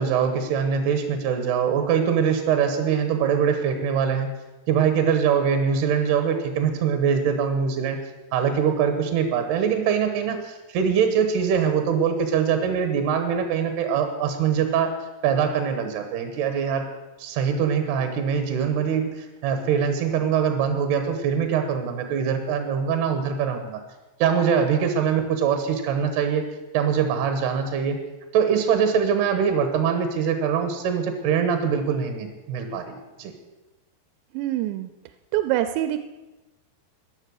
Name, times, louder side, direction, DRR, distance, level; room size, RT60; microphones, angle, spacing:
voice 1, 0.0-4.3 4.7-8.0 8.3-14.9 15.2-16.9 17.2-23.8 24.2-26.5 26.7-28.0 28.3-33.3, right 7 dB, 75° right, 7 dB, 3.1 m, -23 dB
voice 2, 34.3-34.9 35.3-36.0, right 13 dB, 90° right, 10 dB, 2.9 m, -24 dB
14.0 x 10.5 x 6.4 m, 1.1 s
omnidirectional pair, 5.0 m